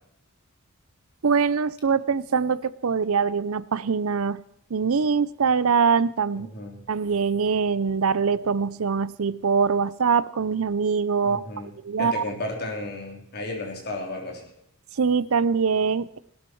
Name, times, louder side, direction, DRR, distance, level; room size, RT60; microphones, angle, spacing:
voice 1, 1.2-4.4 4.7-6.5 6.9-11.4 11.8-12.2 15.0-16.2, right 5 dB, 70° right, 18 dB, 0.6 m, -23 dB
voice 2, 6.3-6.8 11.2-11.7 12.0-14.5, left 2 dB, 50° left, 0 dB, 3.7 m, -33 dB
17.0 x 12.5 x 4.6 m, 0.77 s
head